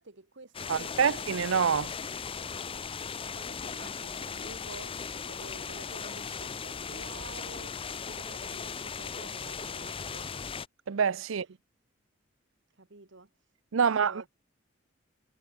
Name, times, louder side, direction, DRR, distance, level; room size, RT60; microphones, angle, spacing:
voice 1, 0.0-1.1 3.2-5.0 5.3-10.3 12.8-13.3 13.8-14.3, right 3 dB, 65° right, 1.8 m, -49 dB
sound 1, 0.5-10.7, left 6 dB, 30° left, 0.6 m, -38 dB
voice 2, 0.7-1.9 10.9-11.5 13.7-14.2, right 6 dB, 80° right, 0.6 m, -26 dB
head